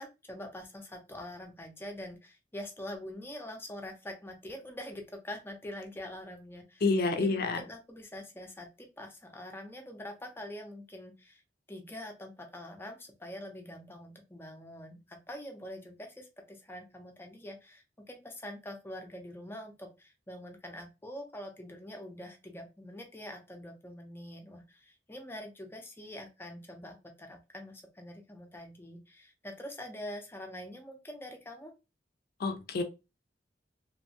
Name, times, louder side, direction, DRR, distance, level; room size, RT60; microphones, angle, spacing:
voice 1, 0.0-11.4 11.7-31.7, left 1 dB, 15° left, 0.6 m, -45 dB
voice 2, 6.8-7.6 32.4-32.8, left 3 dB, 60° left, 0.5 m, -28 dB
2.9 x 2.2 x 2.6 m
head